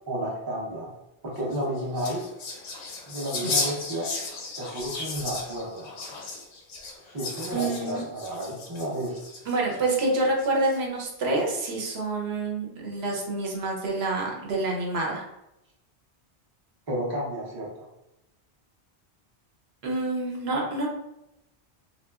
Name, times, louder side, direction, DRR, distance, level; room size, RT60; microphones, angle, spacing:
voice 1, 0.1-0.9 1.2-2.2 3.1-4.1 4.6-5.9 7.1-9.2 16.9-17.7, right 1 dB, 30° right, -3 dB, 0.5 m, -31 dB
sound 1, 1.4-9.8 10.4-11.0, left 3 dB, 85° left, 0.9 m, -35 dB
voice 2, 7.5-8.0 9.5-15.2 19.8-20.9, right 2 dB, 75° right, -1 dB, 0.9 m, -27 dB
2.9 x 2.3 x 2.3 m, 0.90 s
omnidirectional pair, 1.1 m